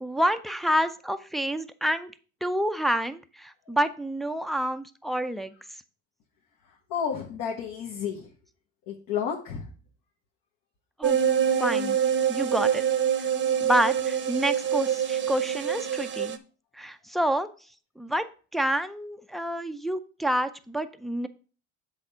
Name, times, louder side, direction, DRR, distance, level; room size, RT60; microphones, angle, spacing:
voice 1, 0.0-2.1 2.4-5.5 11.0-11.2 11.6-12.0 12.3-12.8 13.6-16.4 16.7-17.5 18.0-18.3 18.5-21.3, right 1 dB, ahead, 9 dB, 0.5 m, -28 dB
voice 2, 6.9-8.2 8.9-9.6, left 7 dB, 60° left, 0 dB, 1.3 m, -31 dB
sound 1, 11.0-16.4, right 8 dB, 30° right, 0.8 m, -25 dB
7.9 x 3.6 x 5.5 m, 0.37 s
hypercardioid pair, 85°, 40 cm